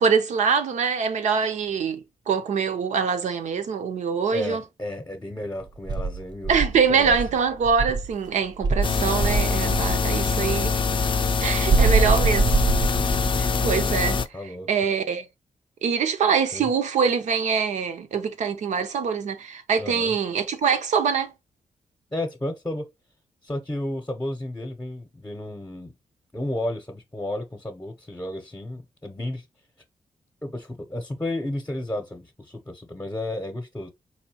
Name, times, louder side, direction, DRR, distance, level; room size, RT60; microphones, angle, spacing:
voice 1, 0.0-4.6 6.5-10.8 11.4-12.5 13.4-14.2 14.7-15.3 15.8-21.3, right 6 dB, 80° right, 0.7 m, -24 dB
voice 2, 4.3-7.2 11.6-12.3 14.3-14.7 16.5-16.7 19.8-20.1 22.1-22.9 23.4-25.9 26.3-29.4 30.4-33.9, left 1 dB, 15° left, 0.8 m, -33 dB
Insect, 5.9-8.1 8.6-10.0 11.7-13.4, right 4 dB, 35° right, 0.4 m, -23 dB
sound 1, 8.8-14.3, left 4 dB, 40° left, 0.4 m, -23 dB
4.2 x 2.7 x 2.9 m
cardioid pair, 65°, 12 cm